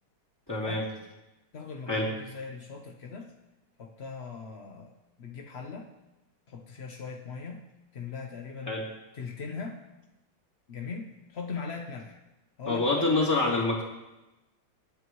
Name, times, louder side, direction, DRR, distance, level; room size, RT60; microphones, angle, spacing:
voice 1, 0.5-0.8 1.9-2.1 8.7-8.8 12.6-13.8, left 2 dB, 10° left, -5 dB, 2.9 m, -26 dB
voice 2, 1.5-3.3 3.8-4.9 5.2-5.9 6.5-7.6 7.9-8.8 9.1-9.8 10.7-12.2 12.6-13.7, left 5 dB, 65° left, 2 dB, 0.6 m, -40 dB
26.5 x 9.4 x 3.1 m, 1.0 s
omnidirectional pair, 2.4 m